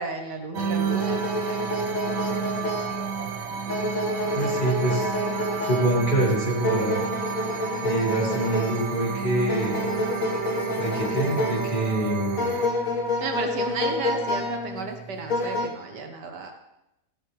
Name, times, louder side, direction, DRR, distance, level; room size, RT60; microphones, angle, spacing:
voice 1, 0.0-1.6 4.2-4.4 13.2-16.5, right 4 dB, 80° right, 4 dB, 1.8 m, -33 dB
sound 1, 0.5-12.7, right 7 dB, 60° right, 0.8 m, -31 dB
sound 2, 0.9-15.7, left 1 dB, 55° left, 1.6 m, -29 dB
voice 2, 4.3-5.1 5.6-7.0 7.8-9.9 10.8-12.5, right 2 dB, 30° left, -4 dB, 2.9 m, -25 dB
15.0 x 9.0 x 3.5 m, 0.88 s
omnidirectional pair, 1.8 m